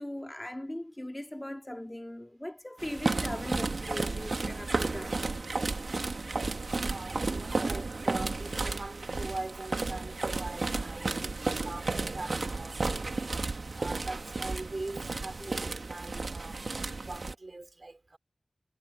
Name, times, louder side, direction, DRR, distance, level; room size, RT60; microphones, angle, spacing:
voice 1, 0.0-5.3 15.4-15.5, left 1 dB, 15° left, 2.8 m, -39 dB
sound 1, 2.8-17.3, right 3 dB, 65° right, 1.7 m, -33 dB
voice 2, 6.9-13.0 13.8-16.6 17.0-18.2, right 2 dB, 45° right, 5.1 m, -42 dB
wide cardioid pair, 65°, 0 cm